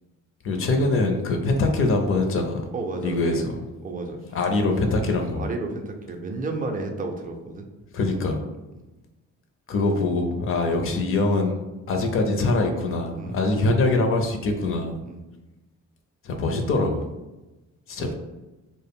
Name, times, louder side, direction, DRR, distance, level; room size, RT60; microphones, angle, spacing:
voice 1, 0.4-2.6 3.0-3.5 4.3-5.5 7.9-8.4 9.7-11.6 11.9-15.0 16.2-17.0 17.9-18.1, left 2 dB, 45° left, 4 dB, 0.4 m, -23 dB
voice 2, 2.7-3.6 3.8-4.4 5.4-7.7 8.7-8.8 13.2-13.4 15.0-15.2 18.0-18.1, right 3 dB, 30° right, 3 dB, 0.4 m, -32 dB
2.0 x 2.0 x 3.4 m, 1.1 s
cardioid pair, 90°, 30 cm